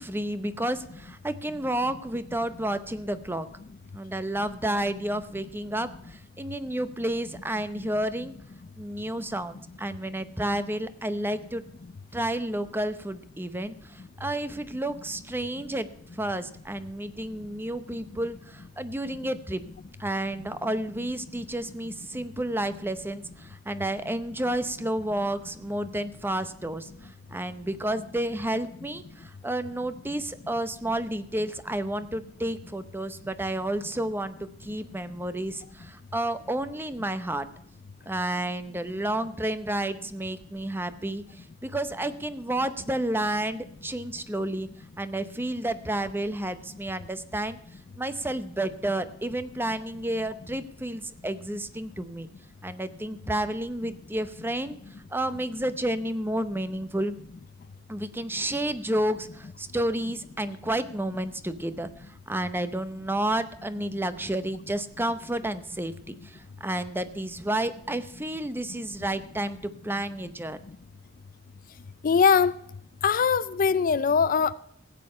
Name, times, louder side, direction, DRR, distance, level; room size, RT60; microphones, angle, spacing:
voice 1, 0.0-3.5 3.9-8.3 8.8-11.6 12.1-15.9 16.1-19.6 20.0-37.5 38.1-44.7 45.0-47.6 48.0-52.3 52.6-54.8 55.1-57.2 57.9-61.9 62.3-70.6, right 1 dB, 10° right, 12 dB, 0.7 m, -31 dB
voice 2, 72.0-72.5 73.0-74.5, left 6 dB, 45° left, 17 dB, 0.4 m, -21 dB
15.5 x 8.7 x 5.5 m, 0.69 s
head